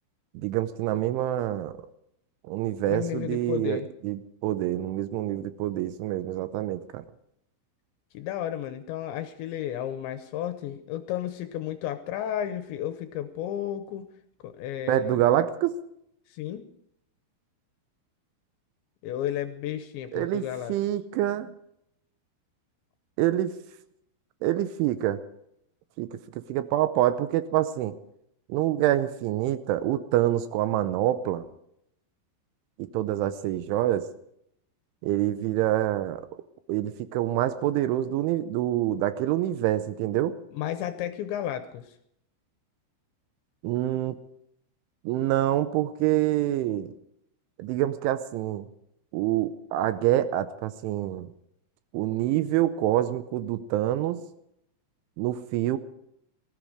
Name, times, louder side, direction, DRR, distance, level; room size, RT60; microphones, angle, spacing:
voice 1, 0.3-1.8 2.5-7.0 14.9-15.8 20.1-21.5 23.2-23.6 24.4-25.2 26.0-28.0 28.5-31.4 32.8-34.1 35.0-36.3 36.7-40.4 43.6-44.2 45.0-46.9 47.6-48.7 49.1-51.3 51.9-54.2 55.2-55.8, right 13 dB, 80° right, 12 dB, 3.0 m, -26 dB
voice 2, 2.9-3.9 8.1-14.1 14.4-15.2 16.3-16.6 19.0-20.7 40.5-42.0, left 11 dB, 80° left, 10 dB, 2.8 m, -33 dB
19.0 x 15.0 x 5.0 m, 0.74 s
omnidirectional pair, 5.9 m